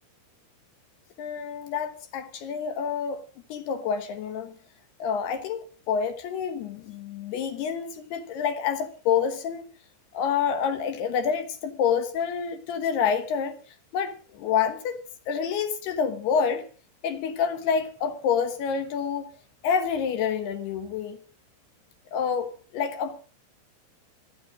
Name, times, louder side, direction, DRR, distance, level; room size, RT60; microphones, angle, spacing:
voice 1, 1.2-3.2 3.5-4.5 5.0-9.7 10.1-13.6 13.9-16.6 17.0-19.3 19.6-21.2 22.1-23.2, left 7 dB, 70° left, 2.9 m, -28 dB
25.5 x 9.1 x 5.0 m
omnidirectional pair, 5.3 m